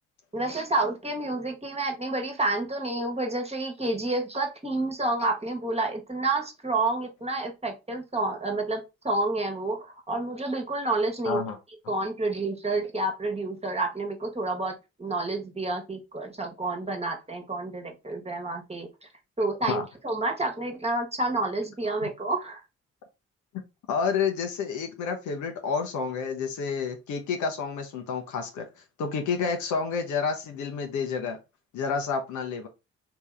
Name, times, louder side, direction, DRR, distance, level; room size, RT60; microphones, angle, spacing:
voice 1, 0.3-11.4 11.9-18.9 19.4-22.6, right 2 dB, 20° right, 2 dB, 1.3 m, -29 dB
voice 2, 11.2-11.6 19.7-19.8 22.0-22.1 23.9-28.7 29.0-31.4 31.7-32.7, left 5 dB, 65° left, 5 dB, 0.9 m, -29 dB
3.5 x 2.9 x 3.3 m, 0.26 s
hypercardioid pair, 40°, 33 cm